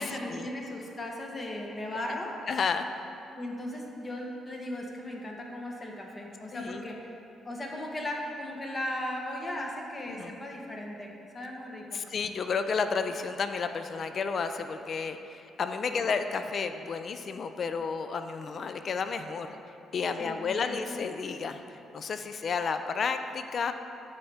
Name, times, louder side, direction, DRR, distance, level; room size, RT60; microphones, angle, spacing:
voice 1, 0.0-2.3 3.3-7.0 7.4-12.0 15.9-16.0 20.2-21.0, left 1 dB, 30° left, 0 dB, 0.9 m, -37 dB
voice 2, 2.5-2.8 6.5-6.8 10.1-10.4 11.9-19.5 19.9-23.7, left 5 dB, 50° left, 8 dB, 0.3 m, -32 dB
9.1 x 4.1 x 3.4 m, 2.8 s
cardioid pair, 90°, 0 cm